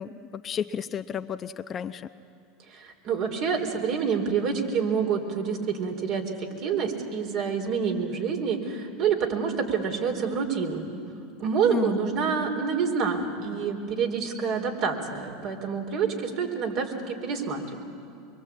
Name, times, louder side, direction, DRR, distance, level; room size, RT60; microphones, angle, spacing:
voice 1, 0.0-2.1 11.7-12.0, left 7 dB, 35° left, 10 dB, 0.8 m, -32 dB
voice 2, 2.7-10.9 11.4-17.8, right 6 dB, 55° right, 2 dB, 4.2 m, -27 dB
24.0 x 23.5 x 8.6 m, 2.4 s
hypercardioid pair, 100°, 0 cm